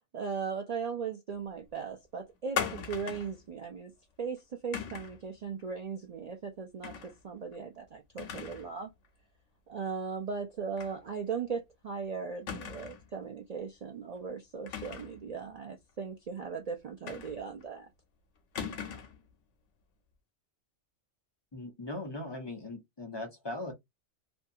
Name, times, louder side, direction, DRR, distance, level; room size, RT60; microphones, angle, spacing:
voice 1, 0.1-3.9 4.2-8.9 9.7-17.9, right 5 dB, 65° right, 0.3 m, -38 dB
sound 1, 2.6-3.4 4.7-5.2 6.8-7.1 7.5-7.6 8.2-8.7 9.0-9.1 10.8-11.0 11.3-11.4 12.5-13.1 14.7-15.2 17.1-17.6 18.5-19.2, left 7 dB, 75° left, 1.0 m, -38 dB
voice 2, 21.5-23.7, left 2 dB, 30° left, 0.5 m, -39 dB
2.6 x 2.3 x 2.6 m
omnidirectional pair, 1.2 m